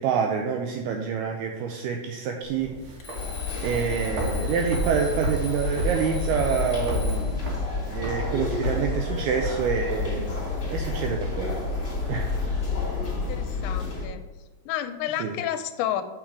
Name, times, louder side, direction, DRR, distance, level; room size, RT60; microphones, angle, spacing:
voice 1, 0.0-2.8 3.6-7.6 7.9-10.4 10.7-11.6 12.1-12.3 15.2-15.3, right 6 dB, 85° right, 3 dB, 2.3 m, -27 dB
sound 1, 2.4-12.4, right 2 dB, 55° right, 2.7 m, -35 dB
Alarm, 3.0-7.4, left 4 dB, 70° left, 1.6 m, -42 dB
sound 2, 3.1-14.1, left 4 dB, 25° left, 1.9 m, -30 dB
voice 2, 13.3-14.2 14.7-16.0, left 11 dB, 85° left, 9 dB, 2.9 m, -30 dB
7.5 x 6.3 x 4.7 m, 1.3 s
omnidirectional pair, 5.2 m